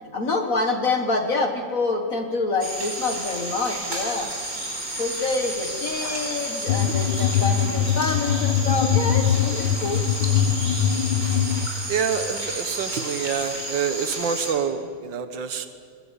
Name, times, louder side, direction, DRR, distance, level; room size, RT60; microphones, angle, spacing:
voice 1, 0.1-4.3 5.0-10.0, left 3 dB, 50° left, 5 dB, 1.8 m, -26 dB
sound 1, 2.6-14.5, right 1 dB, 50° right, 5.0 m, -32 dB
sound 2, 6.7-11.7, left 9 dB, 90° left, 1.6 m, -22 dB
voice 2, 11.9-15.7, right 7 dB, 85° right, 9 dB, 1.9 m, -27 dB
23.0 x 22.0 x 8.3 m, 2.4 s
omnidirectional pair, 1.9 m